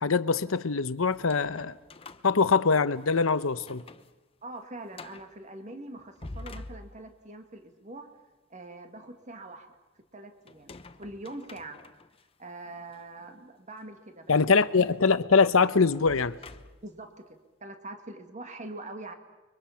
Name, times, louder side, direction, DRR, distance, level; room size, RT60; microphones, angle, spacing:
voice 1, 0.0-1.7 2.2-3.8 14.3-16.3, left 4 dB, 90° left, 0.9 m, -23 dB
sound 1, 1.1-3.1 3.5-4.1 4.4-4.5 4.9-5.3 6.0-7.3 10.5-12.2 12.9-13.0 14.8-17.0, left 2 dB, 30° left, 0.8 m, -47 dB
voice 2, 4.4-8.1 8.5-9.7 10.1-10.7 11.0-11.8 12.4-14.6 16.8-19.1, right 2 dB, 35° right, 1.9 m, -43 dB
29.5 x 23.5 x 5.8 m
head